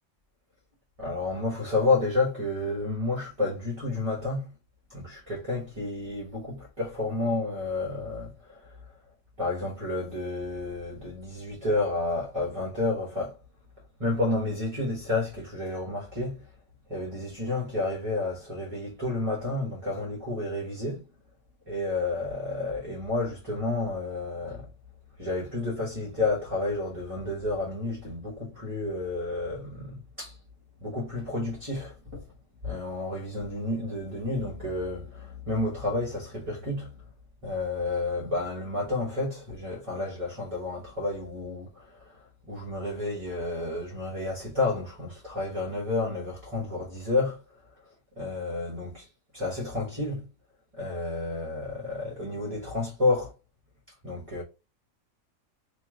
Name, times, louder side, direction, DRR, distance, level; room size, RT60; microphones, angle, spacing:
voice 1, 1.0-4.5 4.9-9.0 9.4-13.4 14.0-16.5 16.9-21.1 21.7-24.7 25.2-30.4 30.8-32.3 32.6-37.0 37.4-47.6 48.1-49.1 49.3-50.3 50.7-53.3 54.0-54.4, left 2 dB, 25° right, 1.2 m, -30 dB
3.1 x 2.8 x 3.7 m
omnidirectional pair, 1.4 m